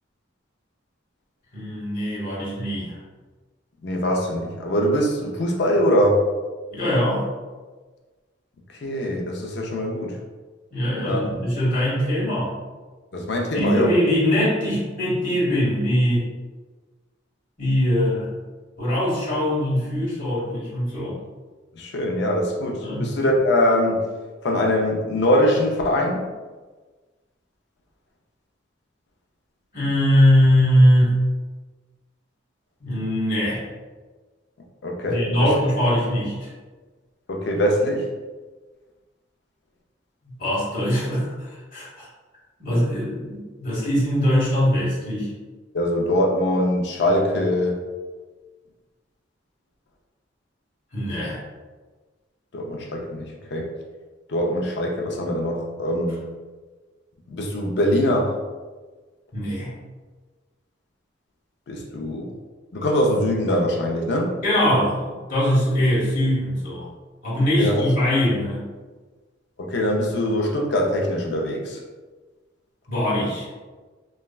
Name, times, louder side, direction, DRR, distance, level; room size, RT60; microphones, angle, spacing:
voice 1, 1.5-3.0 6.7-7.2 10.7-12.5 13.5-16.2 17.6-18.3 18.8-21.2 22.8-23.1 29.7-31.2 32.8-33.7 35.1-36.5 40.2-42.1 42.6-45.3 50.9-51.4 59.3-59.8 64.4-66.9 67.2-68.6 72.9-73.5, equal, 50° left, -7 dB, 1.1 m, -22 dB
voice 2, 3.8-6.2 8.8-10.2 11.0-11.4 13.1-13.9 21.8-24.0 24.4-26.3 34.8-35.5 37.3-38.1 45.7-47.8 52.5-53.7 54.3-56.2 57.3-58.4 61.7-62.3 62.7-64.3 67.6-67.8 69.6-71.8, equal, 65° left, 1 dB, 0.5 m, -22 dB
3.1 x 2.2 x 2.3 m, 1.3 s
head